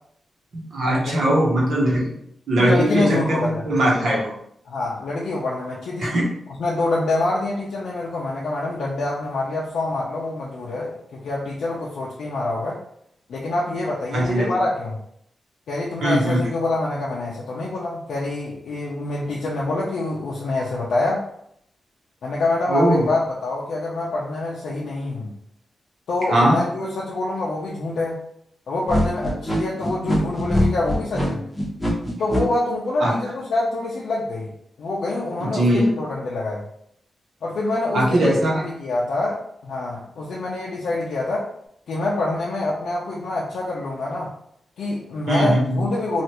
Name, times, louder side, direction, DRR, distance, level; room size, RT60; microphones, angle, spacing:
voice 1, 0.7-2.2 2.5-4.4 6.0-6.2 14.1-14.5 16.0-16.5 22.7-23.1 26.3-26.6 33.0-33.1 35.4-35.9 37.9-38.6 45.3-45.8, right 1 dB, 70° right, -4 dB, 1.0 m, -20 dB
voice 2, 2.6-3.7 4.1-4.2 4.7-6.1 6.6-12.8 13.3-15.0 15.7-21.2 22.2-25.3 26.1-28.2 28.7-31.4 32.2-34.5 34.8-36.6 37.4-41.5 41.9-44.3 44.8-46.2, left 2 dB, 85° left, -5 dB, 0.5 m, -26 dB
sound 1, 28.9-32.4, equal, 10° left, 0.8 m, -22 dB
3.2 x 2.4 x 2.9 m, 0.70 s
wide cardioid pair, 135°, 0 cm